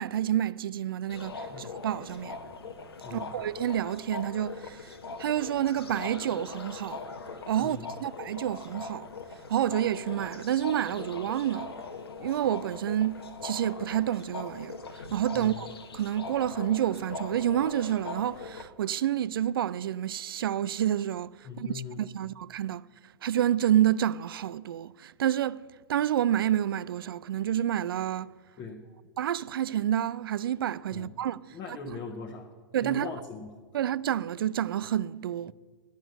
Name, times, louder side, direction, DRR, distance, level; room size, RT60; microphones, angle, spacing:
voice 1, 0.0-2.4 3.1-7.0 7.5-9.1 9.5-11.7 12.2-14.8 15.1-15.7 15.9-22.8 23.2-25.6 25.9-28.3 29.2-32.0 32.7-33.1 33.7-35.5, right 11 dB, 65° right, 0.4 m, -29 dB
sound 1, 1.1-18.7, left 4 dB, 80° left, 1.0 m, -41 dB
voice 2, 21.5-22.0 28.6-28.8 30.9-31.1 31.5-32.5 32.7-33.5, left 5 dB, 30° left, 1.1 m, -40 dB
10.5 x 6.3 x 7.8 m
figure-of-eight pair, 110°, 13 cm